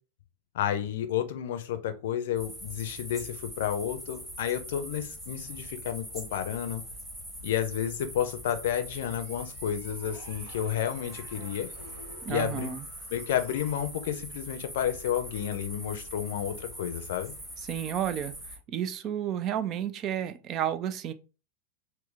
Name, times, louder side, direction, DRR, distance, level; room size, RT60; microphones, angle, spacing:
voice 1, 0.5-6.8 7.4-11.7 12.3-12.7 13.1-17.3, left 10 dB, 55° left, 0.5 m, -31 dB
sound 1, 2.4-18.6, equal, 10° right, 1.2 m, -42 dB
sound 2, 8.9-13.9, right 2 dB, 60° right, 1.3 m, -52 dB
voice 2, 12.2-12.9 17.7-18.3 18.7-21.1, right 10 dB, 35° right, 0.4 m, -31 dB
4.3 x 2.1 x 3.4 m
figure-of-eight pair, 90°, 0 cm